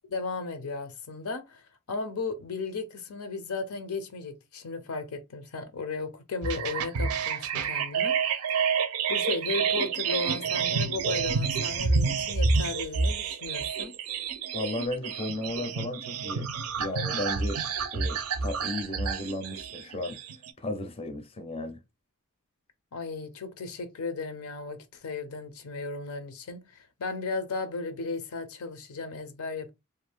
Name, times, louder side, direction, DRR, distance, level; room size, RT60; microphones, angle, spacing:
voice 1, 0.1-1.6 1.9-8.1 9.1-13.9 22.9-29.7, left 3 dB, 75° left, 0.6 m, -35 dB
sound 1, 6.4-20.5, right 5 dB, 75° right, 0.5 m, -29 dB
voice 2, 14.5-16.5 16.8-17.6 17.9-20.2 20.6-21.8, left 1 dB, 25° left, 0.5 m, -34 dB
2.6 x 2.3 x 3.2 m
head